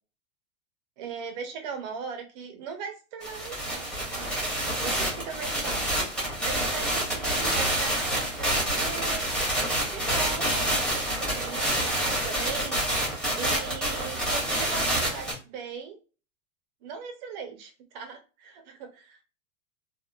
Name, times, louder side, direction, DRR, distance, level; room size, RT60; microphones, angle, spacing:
voice 1, 1.0-6.0 6.4-9.3 9.9-12.8 13.3-16.0 16.8-19.2, right 6 dB, 35° right, 5 dB, 0.4 m, -39 dB
sound 1, 3.2-15.3, right 1 dB, ahead, 0.7 m, -27 dB
2.9 x 2.0 x 2.3 m, 0.34 s
supercardioid pair, 145°, 38 cm